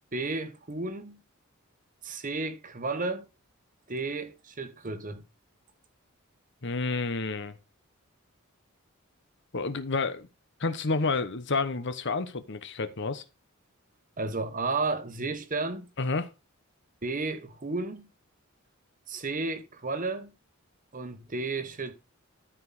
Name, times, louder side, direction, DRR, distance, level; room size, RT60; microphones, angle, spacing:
voice 1, 0.1-1.2 2.0-3.3 3.9-5.2 14.2-15.9 17.0-18.1 19.1-20.3 20.9-21.9, right 3 dB, 40° right, 1.2 m, -32 dB
voice 2, 6.6-7.5 9.5-10.3 10.6-13.2 16.0-16.3, left 3 dB, 55° left, 1.0 m, -29 dB
13.0 x 4.9 x 4.0 m
head